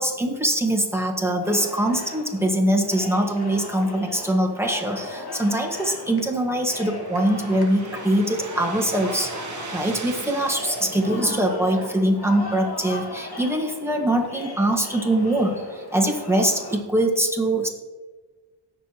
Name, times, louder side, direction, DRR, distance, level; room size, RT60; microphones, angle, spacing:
voice 1, 0.0-9.3 9.7-17.7, right 1 dB, 5° right, 0 dB, 1.8 m, -23 dB
sound 1, 1.4-16.8, left 2 dB, 60° left, 2.2 m, -37 dB
sound 2, 5.6-12.1, right 3 dB, 45° right, 1.3 m, -39 dB
17.5 x 6.9 x 3.1 m, 1.3 s
cardioid pair, 70°, 42 cm